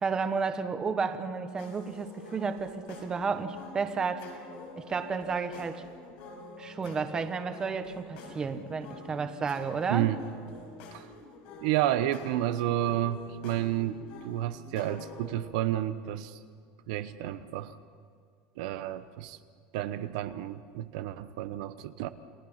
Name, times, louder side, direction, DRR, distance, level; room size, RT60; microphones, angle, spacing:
voice 1, 0.0-4.2 4.8-5.8 6.6-10.1, right 5 dB, 20° right, 8 dB, 1.3 m, -32 dB
sound 1, 1.6-15.4, left 3 dB, 75° left, 6.3 m, -47 dB
voice 2, 9.9-10.2 10.9-11.1 11.6-16.4 16.9-17.7 18.6-19.4 19.7-22.1, right 13 dB, 75° right, 11 dB, 0.9 m, -31 dB
29.0 x 18.5 x 5.8 m, 2.1 s
cardioid pair, 150°, 4 cm